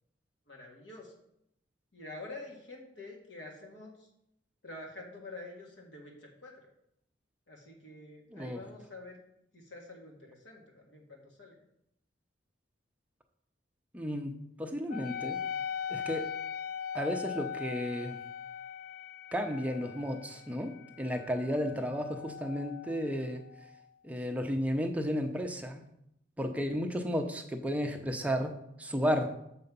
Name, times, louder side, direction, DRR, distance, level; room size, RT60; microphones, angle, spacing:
voice 1, 0.5-1.1 1.9-4.1 4.6-6.5 7.5-9.2 9.5-11.6, left 2 dB, 65° left, 0 dB, 1.7 m, -47 dB
voice 2, 13.9-15.4 15.9-16.3 16.9-18.2 19.3-23.4 24.0-25.8 26.4-29.3, equal, 10° right, 4 dB, 0.6 m, -33 dB
Wind instrument woodwind instrument, 14.9-23.8, left 7 dB, 50° left, 0.3 m, -40 dB
6.7 x 4.7 x 5.4 m, 0.77 s
head